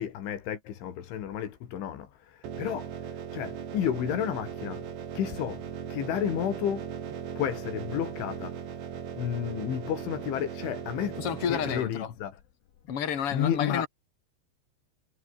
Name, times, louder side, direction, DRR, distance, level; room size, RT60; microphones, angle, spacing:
voice 1, 0.0-2.9 3.3-4.9 5.2-5.7 5.9-6.9 7.4-8.6 9.2-11.2 11.5-12.3 13.3-13.9, left 10 dB, 85° left, 5.2 m, -31 dB
sound 1, 2.4-11.8, right 8 dB, 70° right, 5.4 m, -38 dB
voice 2, 11.2-12.1 12.9-13.9, left 8 dB, 35° left, 2.9 m, -30 dB
omnidirectional pair, 5.3 m